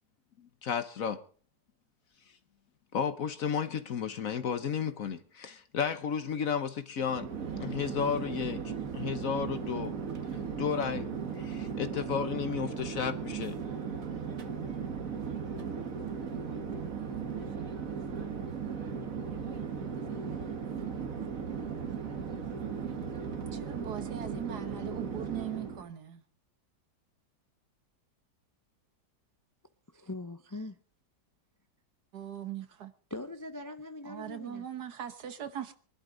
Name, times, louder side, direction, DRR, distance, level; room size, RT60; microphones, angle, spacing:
voice 1, 0.6-1.2 2.9-7.3 7.6-9.9 10.6-11.1 11.4-13.6, left 7 dB, 60° left, 1.2 m, -33 dB
Chatter / Fixed-wing aircraft airplane, 7.0-25.9, right 6 dB, 55° right, 1.8 m, -37 dB
voice 2, 23.5-26.2 32.1-32.9 34.0-35.7, right 10 dB, 70° right, 1.7 m, -40 dB
voice 3, 29.9-30.8 33.1-34.7, left 2 dB, 30° left, 0.3 m, -41 dB
23.5 x 11.5 x 3.9 m
omnidirectional pair, 1.8 m